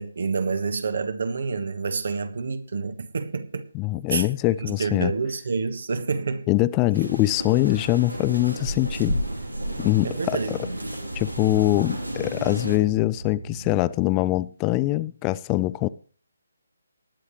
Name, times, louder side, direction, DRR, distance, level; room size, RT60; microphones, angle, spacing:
voice 1, 0.0-3.7 4.1-6.5 10.0-10.6, right 4 dB, 50° right, 1.4 m, -28 dB
voice 2, 3.7-5.1 6.5-9.2 9.8-10.6 11.2-15.9, left 18 dB, 20° left, 0.5 m, -23 dB
sound 1, 6.9-12.8, right 1 dB, 90° right, 3.0 m, -32 dB
sound 2, 7.6-13.9, right 3 dB, 70° right, 7.1 m, -40 dB
19.0 x 9.8 x 3.1 m
figure-of-eight pair, 145°, 0 cm